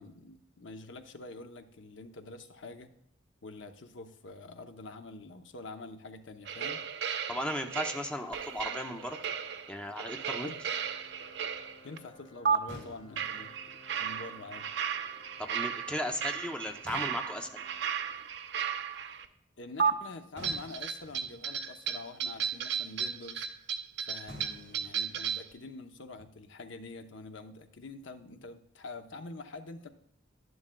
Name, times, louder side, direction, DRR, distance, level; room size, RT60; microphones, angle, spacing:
voice 1, 0.0-2.9 3.4-6.8 10.4-10.6 11.8-13.5 14.0-14.7 19.6-23.5 24.1-29.9, left 3 dB, 75° left, 7 dB, 0.7 m, -46 dB
sound 1, 6.4-12.0 12.4-12.6 13.2-19.2 19.8-19.9 20.4-25.5, right 7 dB, 65° right, 0.6 m, -34 dB
voice 2, 7.3-9.2 9.7-10.5 15.4-17.5, left 1 dB, 5° left, 4 dB, 0.6 m, -36 dB
Organ, 7.7-18.5, left 2 dB, 35° left, 3.4 m, -58 dB
sound 2, 8.8-9.6 11.4-11.6 12.7-13.8 16.6-16.7 16.9-18.0 20.4-21.6 22.1-22.2 22.6-22.7 24.3-25.5, equal, 45° right, 4.1 m, -50 dB
11.0 x 11.0 x 2.2 m, 0.75 s
head